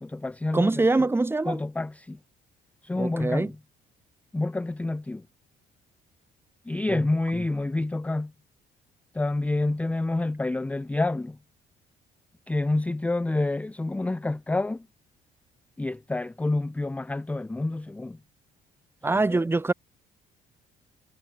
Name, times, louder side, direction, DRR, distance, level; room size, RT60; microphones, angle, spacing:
voice 1, 0.0-1.1 1.5-2.2 2.8-3.6 4.3-5.3 6.7-8.3 9.1-11.4 12.5-14.9 15.8-18.2 19.0-19.4, left 2 dB, 10° left, 0.5 m, -28 dB
voice 2, 0.5-1.6 3.0-3.5 6.9-7.0 19.0-19.7, right 2 dB, 15° right, 1.2 m, -24 dB
cardioid pair, 110°, 17 cm